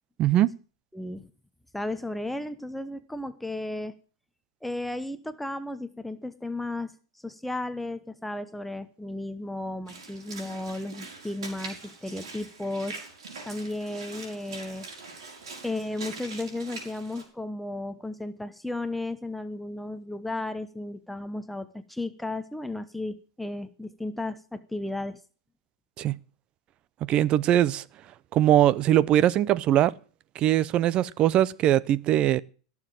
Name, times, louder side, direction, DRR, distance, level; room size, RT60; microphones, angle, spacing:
voice 1, 0.2-0.5 26.0-26.2 27.0-27.8 28.3-29.9 30.4-32.4, right 12 dB, 35° right, 0.6 m, -21 dB
voice 2, 0.9-1.3 1.7-3.9 4.6-6.9 7.2-13.0 13.4-14.9 15.6-25.2, left 2 dB, 5° left, 0.9 m, -34 dB
Walk footsteps / Splash splatter, 9.9-17.2, right 4 dB, 75° right, 5.0 m, -43 dB
17.0 x 7.2 x 7.5 m
hypercardioid pair, 110°, 3 cm